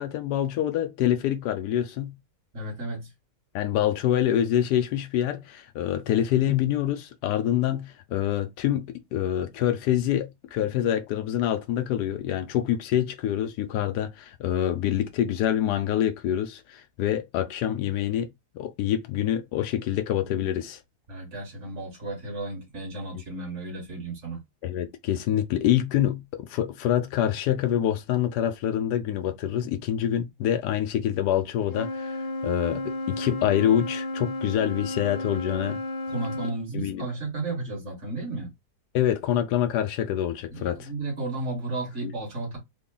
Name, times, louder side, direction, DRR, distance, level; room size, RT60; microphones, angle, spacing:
voice 1, 0.0-2.1 3.5-18.3 18.5-20.8 24.6-32.2 32.4-35.8 36.7-37.1 38.9-40.9 42.0-42.1, left 11 dB, 80° left, 1.1 m, -26 dB
voice 2, 2.5-3.1 21.1-24.4 35.6-35.7 36.1-38.5 40.5-42.6, right 2 dB, 45° right, 1.9 m, -33 dB
Wind instrument woodwind instrument, 31.6-36.6, left 1 dB, 55° left, 0.6 m, -32 dB
3.8 x 2.2 x 3.7 m
omnidirectional pair, 1.7 m